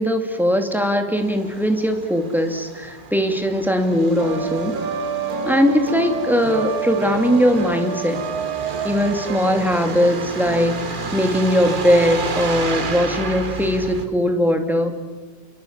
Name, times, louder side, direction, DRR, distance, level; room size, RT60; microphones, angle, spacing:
voice 1, 0.0-4.8 5.4-8.2 8.8-14.9, equal, ahead, 5 dB, 2.0 m, -20 dB
Truck, 1.2-14.1, right 4 dB, 30° right, 1.3 m, -32 dB
sound 1, 4.2-11.8, right 6 dB, 60° right, 1.6 m, -29 dB
28.0 x 22.5 x 7.2 m, 1.4 s
omnidirectional pair, 1.9 m